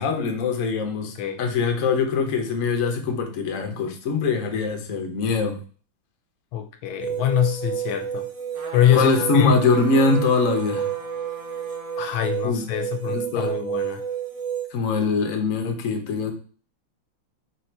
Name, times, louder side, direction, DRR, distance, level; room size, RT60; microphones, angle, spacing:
voice 1, 0.0-5.6 8.9-10.9 12.4-12.7 13.1-13.5 14.7-16.3, left 4 dB, 55° left, 4 dB, 1.0 m, -23 dB
voice 2, 6.5-8.3 8.7-9.5 12.0-14.0, left 11 dB, 75° left, 6 dB, 1.3 m, -24 dB
sound 1, 7.0-14.7, right 8 dB, 45° right, 1.1 m, -30 dB
sound 2, 8.5-12.2 12.7-12.8, right 3 dB, 90° right, 2.0 m, -40 dB
4.0 x 2.7 x 4.4 m, 0.39 s
omnidirectional pair, 2.2 m